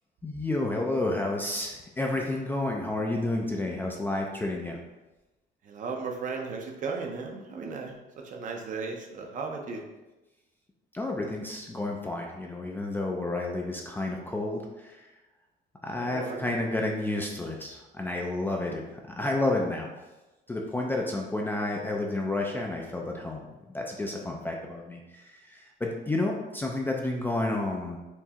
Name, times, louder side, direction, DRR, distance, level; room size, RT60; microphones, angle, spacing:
voice 1, 0.2-4.8 10.9-15.1 15.8-18.8 19.2-19.9 20.5-28.0, left 2 dB, 10° left, 0 dB, 0.3 m, -30 dB
voice 2, 5.6-9.8 16.0-16.7, right 4 dB, 45° right, 2 dB, 0.6 m, -36 dB
4.5 x 3.2 x 2.8 m, 1.1 s
cardioid pair, 155°, 19 cm